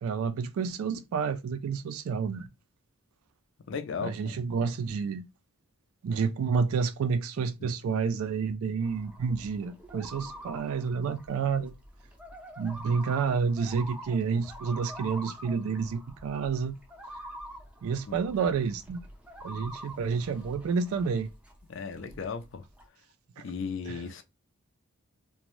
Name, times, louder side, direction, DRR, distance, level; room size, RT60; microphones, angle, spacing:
voice 1, 0.0-2.5 4.0-5.2 6.0-11.7 12.6-16.8 17.8-19.0 19.4-21.3 23.4-23.5 23.9-24.0, right 5 dB, 80° right, 0.3 m, -29 dB
voice 2, 3.7-4.4 7.6-7.7 18.1-18.2 21.7-22.6 23.4-24.2, left 5 dB, 60° left, 0.4 m, -36 dB
sound 1, 8.8-21.6 21.9-22.8, right 1 dB, 5° right, 0.5 m, -46 dB
2.5 x 2.1 x 3.0 m
head